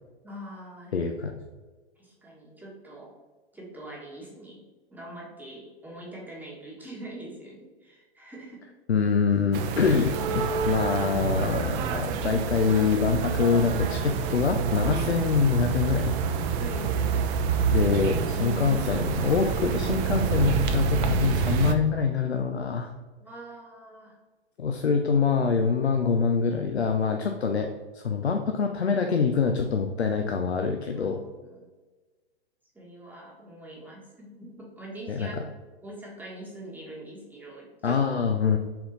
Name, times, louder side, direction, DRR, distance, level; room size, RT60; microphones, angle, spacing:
voice 1, 0.2-1.0 2.0-3.1 3.5-4.6 4.9-8.6 16.6-17.0 23.2-24.2 30.9-31.7 32.7-35.4 35.8-38.0, right 1 dB, 5° right, -5 dB, 1.5 m, -43 dB
voice 2, 0.9-1.3 8.9-16.2 17.7-22.9 24.6-27.7 27.9-31.2 35.1-35.3 37.8-38.6, left 5 dB, 90° left, 4 dB, 0.6 m, -25 dB
sound 1, 9.5-21.7, right 5 dB, 30° right, 0.6 m, -27 dB
5.8 x 4.4 x 3.9 m, 1.3 s
hypercardioid pair, 110°, 32 cm